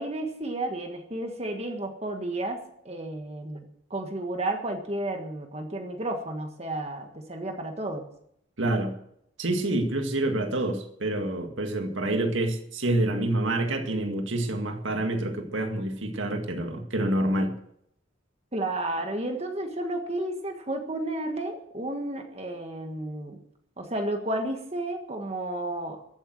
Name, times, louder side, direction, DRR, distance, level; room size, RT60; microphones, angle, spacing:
voice 1, 0.0-2.6 2.8-3.6 3.9-8.1 18.5-23.4 23.8-26.0, right 1 dB, 30° right, 4 dB, 1.6 m, -32 dB
voice 2, 8.6-8.9 9.4-17.5, right 1 dB, 75° right, 4 dB, 2.0 m, -27 dB
14.5 x 9.0 x 7.6 m, 0.71 s
head